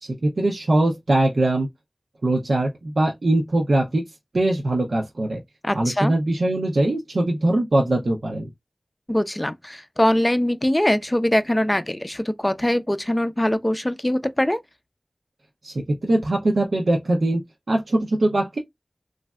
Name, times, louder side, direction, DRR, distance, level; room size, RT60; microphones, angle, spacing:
voice 1, 0.0-1.7 2.2-4.0 4.3-5.4 5.7-8.5 15.6-15.7 16.0-17.4 17.7-18.6, right 1 dB, 90° right, 0.7 m, -21 dB
voice 2, 5.6-6.1 9.1-14.6, left 1 dB, 20° left, 0.4 m, -22 dB
3.2 x 2.6 x 2.3 m
wide cardioid pair, 55°, 0 cm